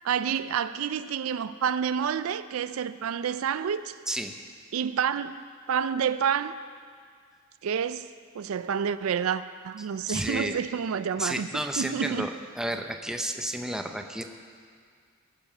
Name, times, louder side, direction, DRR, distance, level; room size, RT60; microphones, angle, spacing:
voice 1, 0.0-3.9 4.7-6.5 7.6-8.1 8.3-11.5 11.8-12.3, right 7 dB, 80° right, 0.4 m, -29 dB
voice 2, 9.8-10.6 11.2-14.2, right 1 dB, 5° right, 0.6 m, -32 dB
19.5 x 7.0 x 5.6 m
head